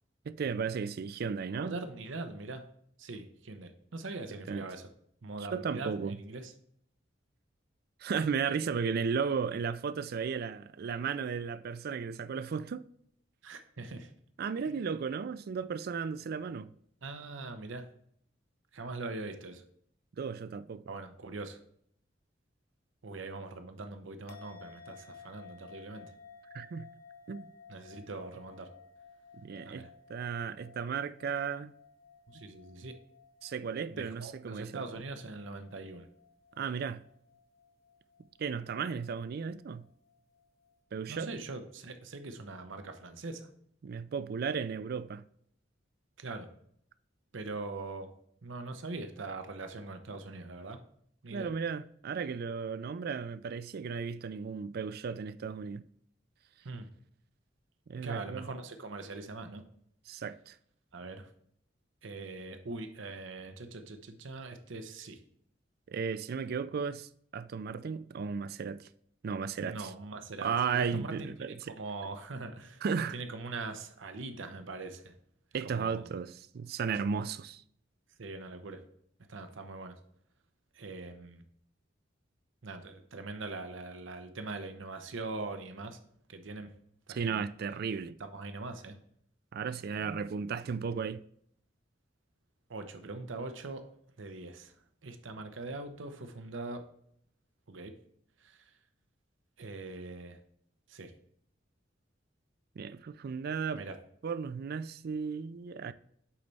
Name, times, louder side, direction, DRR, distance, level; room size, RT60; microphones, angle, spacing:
voice 1, 0.3-1.8 4.5-4.7 5.5-6.2 8.0-12.9 14.4-16.7 20.2-20.8 26.5-26.9 27.3-27.5 29.4-31.7 33.4-34.8 36.6-37.0 38.4-39.9 40.9-41.3 43.8-45.2 51.3-55.8 57.9-58.5 60.1-60.5 65.9-68.9 69.2-69.9 70.4-71.7 72.8-73.2 75.5-77.6 87.1-88.2 89.5-91.2 102.8-103.8 104.2-105.9, right 6 dB, 55° right, 0.4 m, -35 dB
voice 2, 1.5-2.6 3.0-4.9 5.2-6.5 13.4-14.1 14.7-14.8 17.0-17.9 18.7-19.6 20.9-21.6 23.0-26.1 27.7-28.7 29.6-29.9 32.3-32.9 33.9-36.1 41.1-43.5 46.2-46.5 47.3-48.1 48.4-50.8 51.2-51.5 56.6-56.9 58.0-59.6 60.9-61.3 62.0-65.2 69.6-72.8 73.1-75.1 75.6-76.1 78.2-78.8 79.3-79.9 80.7-81.4 82.6-86.0 86.3-86.7 87.1-87.4 88.2-89.0 92.7-93.8 94.2-94.8 95.0-96.8 97.7-97.9 98.4-98.7 99.6-100.4 100.9-101.1 103.7-103.9, right 3 dB, 90° right, 0.8 m, -42 dB
sound 1, 24.3-40.8, left 5 dB, 55° left, 0.8 m, -56 dB
8.6 x 4.0 x 3.3 m
head